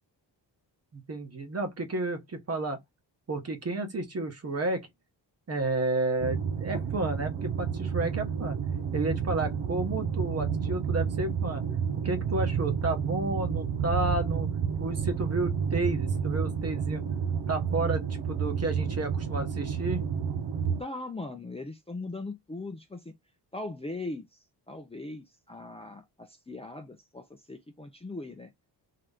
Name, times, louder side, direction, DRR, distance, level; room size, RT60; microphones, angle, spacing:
voice 1, 0.9-2.8 3.3-4.9 5.5-8.6 8.9-11.6 12.0-14.5 14.8-17.0 17.5-20.1, right 2 dB, 35° right, 1.1 m, -31 dB
sound 1, 6.2-20.8, right 7 dB, 70° right, 0.7 m, -30 dB
voice 2, 20.8-23.1 23.5-24.4 24.7-28.5, left 2 dB, 15° left, 0.6 m, -39 dB
3.8 x 3.0 x 3.4 m
wide cardioid pair, 155°, 43 cm